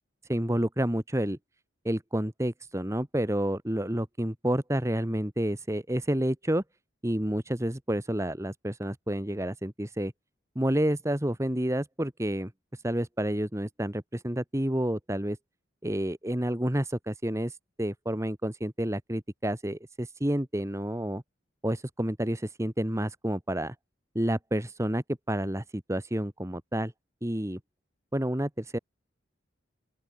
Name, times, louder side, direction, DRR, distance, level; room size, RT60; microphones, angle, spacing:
voice 1, 0.3-1.4 1.8-6.6 7.0-10.1 10.5-12.5 12.8-15.4 15.8-21.2 21.6-23.7 24.1-26.9 27.2-27.6 28.1-28.8, right 1 dB, 15° right, 1.4 m, -29 dB
open air
head